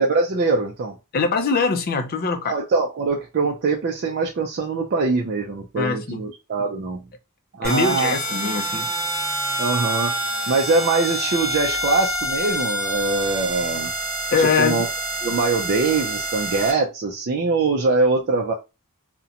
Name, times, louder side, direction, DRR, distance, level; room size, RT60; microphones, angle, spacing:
voice 1, 0.0-1.0 2.4-7.1 7.6-8.5 9.6-10.2 10.5-13.9 14.6-14.9 15.2-18.5, right 3 dB, 45° right, 0.4 m, -23 dB
voice 2, 1.1-2.6 5.8-6.2 7.6-8.9 14.3-14.8, left 4 dB, 40° left, 0.4 m, -22 dB
sound 1, 7.6-16.7, right 1 dB, 15° right, 1.1 m, -27 dB
2.5 x 2.1 x 2.7 m
head